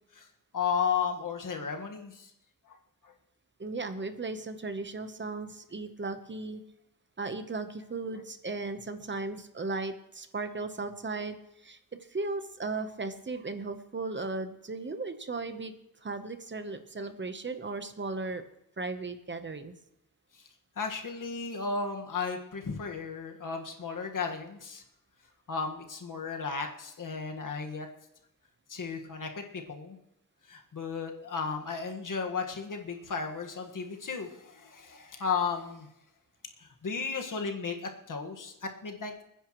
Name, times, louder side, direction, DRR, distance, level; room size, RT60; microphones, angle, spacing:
voice 1, 0.5-2.3 2.7-2.8 3.0-3.1 20.3-20.4 20.8-24.8 25.5-27.9 28.7-30.0 30.5-35.9 36.6-39.2, left 5 dB, 75° left, 3 dB, 1.6 m, -34 dB
voice 2, 3.6-6.6 7.2-15.7 16.0-18.4 18.8-19.7, right 3 dB, 35° right, 9 dB, 1.0 m, -36 dB
29.0 x 10.0 x 3.1 m, 0.80 s
wide cardioid pair, 150°, 33 cm